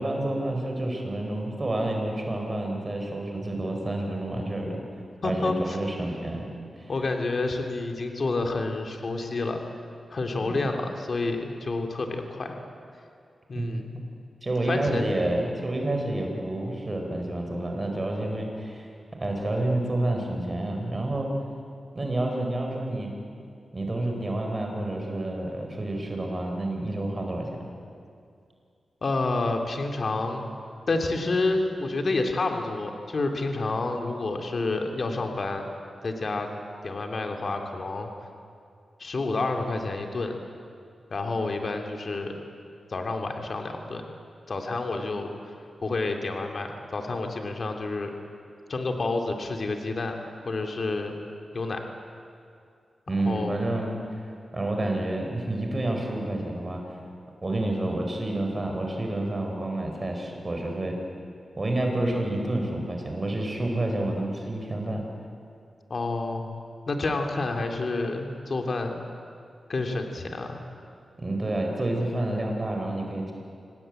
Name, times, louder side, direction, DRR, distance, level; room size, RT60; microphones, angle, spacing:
voice 1, 0.0-4.8 5.2-6.9 10.4-10.6 13.5-14.0 14.4-18.9 19.2-21.3 21.9-23.1 23.7-27.5 53.1-57.0 57.4-61.0 61.6-65.0 71.2-73.3, right 1 dB, 30° right, 2 dB, 4.4 m, -29 dB
voice 2, 5.2-5.8 6.9-9.6 10.1-12.6 13.5-14.0 14.7-15.1 15.4-15.5 29.0-30.4 30.9-35.7 36.0-36.5 36.8-38.1 39.0-40.3 41.1-42.3 42.9-44.0 44.5-45.5 45.8-48.1 48.7-50.2 50.4-51.1 51.5-51.8 53.2-53.6 65.9-66.5 66.9-69.0 69.7-70.6, left 3 dB, 55° left, 3 dB, 2.7 m, -29 dB
26.0 x 18.5 x 8.9 m, 2.4 s
wide cardioid pair, 85°, 0 cm